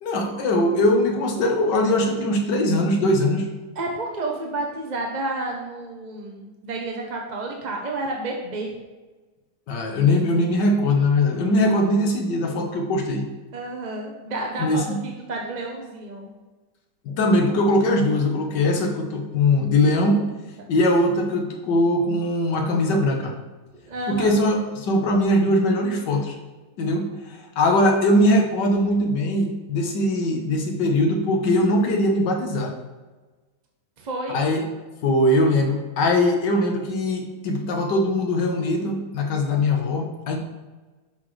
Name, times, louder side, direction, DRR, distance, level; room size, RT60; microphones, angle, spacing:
voice 1, 0.0-3.5 9.7-13.2 14.6-15.0 17.1-20.2 20.7-23.3 24.1-26.3 26.8-32.7 34.3-34.6 35.0-40.4, left 1 dB, 80° left, 3 dB, 1.8 m, -21 dB
voice 2, 3.7-8.8 13.5-16.3 23.7-24.4 34.0-34.5, right 2 dB, 35° right, 0 dB, 0.7 m, -30 dB
10.0 x 6.1 x 3.2 m, 1.3 s
omnidirectional pair, 1.9 m